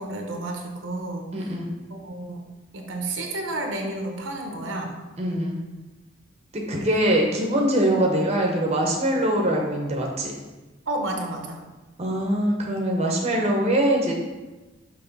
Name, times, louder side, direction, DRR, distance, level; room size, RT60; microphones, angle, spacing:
voice 1, 0.0-1.5 1.9-2.4 2.7-5.0 10.9-11.6, right 2 dB, 70° right, 2 dB, 0.9 m, -31 dB
voice 2, 1.3-1.7 5.2-5.6 6.5-10.3 12.0-14.1, right 1 dB, 30° right, 0 dB, 0.8 m, -23 dB
5.9 x 3.2 x 5.3 m, 1.1 s
head